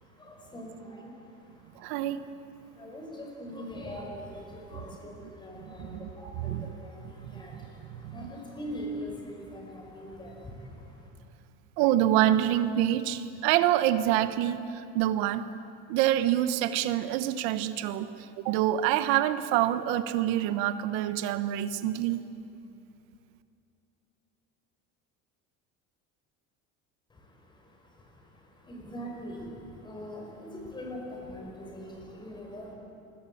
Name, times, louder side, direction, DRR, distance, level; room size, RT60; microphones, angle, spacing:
voice 1, 0.0-11.1 27.1-32.7, equal, 15° left, 1 dB, 5.4 m, -43 dB
voice 2, 1.8-2.2 5.8-6.0 6.4-6.7 7.3-7.4 8.0-8.2 11.8-14.6 14.9-15.4 15.9-18.1 18.4-22.2, right 12 dB, 80° right, 11 dB, 1.3 m, -26 dB
28.5 x 21.5 x 8.7 m, 2.6 s
cardioid pair, 170°, 31 cm